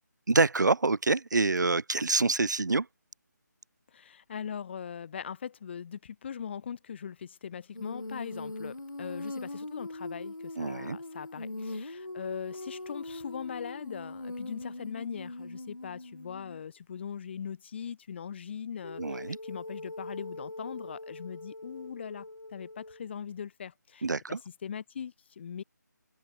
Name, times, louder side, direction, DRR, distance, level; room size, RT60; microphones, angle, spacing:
voice 1, 0.3-2.9 10.6-11.0 19.0-19.4 24.0-24.4, right 3 dB, 75° right, 1.1 m, -26 dB
voice 2, 3.9-25.6, left 7 dB, 35° left, 4.5 m, -41 dB
Female singing, 7.7-16.6 18.8-23.0, left 2 dB, 85° left, 6.8 m, -41 dB
figure-of-eight pair, 160°, 10 cm